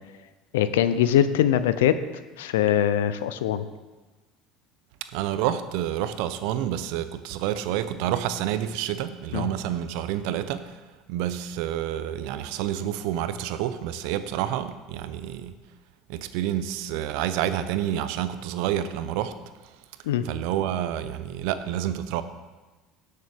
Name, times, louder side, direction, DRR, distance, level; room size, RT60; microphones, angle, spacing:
voice 1, 0.5-2.0 2.4-3.7 9.3-9.5 20.1-20.3, left 10 dB, 85° left, 13 dB, 0.5 m, -22 dB
voice 2, 5.1-10.7 11.1-15.5 16.1-19.3 20.2-22.2, right 11 dB, 70° right, 11 dB, 0.7 m, -28 dB
17.0 x 6.6 x 3.6 m, 1.2 s
hypercardioid pair, 80°, 0 cm